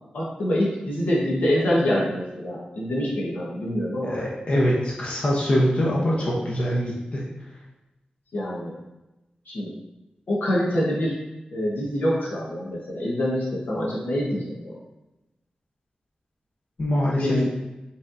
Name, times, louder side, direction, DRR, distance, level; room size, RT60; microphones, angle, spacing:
voice 1, 0.1-4.2 8.3-8.7 9.5-9.7 10.3-11.2 11.5-14.7 17.0-17.5, equal, 85° left, -5 dB, 1.2 m, -25 dB
voice 2, 4.0-7.2 16.8-17.5, equal, 45° left, -4 dB, 0.8 m, -23 dB
5.1 x 3.4 x 2.6 m, 1.0 s
wide cardioid pair, 140°, 3 cm